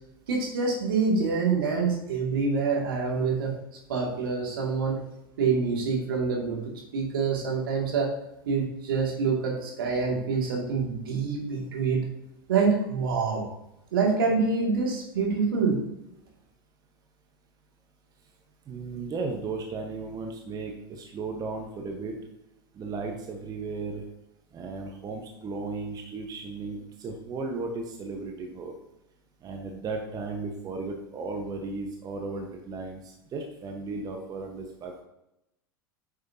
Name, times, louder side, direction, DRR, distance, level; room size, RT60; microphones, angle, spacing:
voice 1, 0.3-3.5 3.9-5.0 5.4-6.6 6.9-8.1 8.5-12.0 12.5-13.5 13.9-15.8, right 4 dB, 70° right, 0 dB, 2.3 m, -26 dB
voice 2, 18.7-22.1 22.7-24.0 24.5-28.7 29.4-35.0, right 3 dB, 30° right, 2 dB, 1.2 m, -35 dB
9.0 x 6.5 x 2.8 m, 0.86 s
hypercardioid pair, 90°, 12 cm